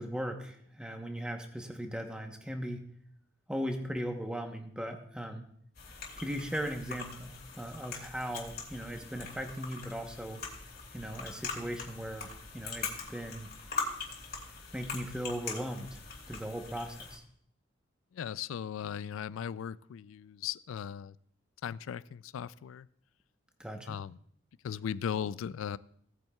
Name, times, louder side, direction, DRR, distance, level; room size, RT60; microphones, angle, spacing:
voice 1, 0.0-2.8 3.5-5.4 6.2-10.4 10.9-13.5 14.7-16.0 16.3-17.2 23.6-24.0, equal, 5° right, 0.9 m, -38 dB
sound 1, 5.7-17.2, left 4 dB, 50° left, 2.6 m, -42 dB
voice 2, 18.1-21.1 21.6-22.9 23.9-24.2 24.6-25.8, left 8 dB, 80° left, 0.3 m, -37 dB
17.0 x 8.9 x 2.3 m
head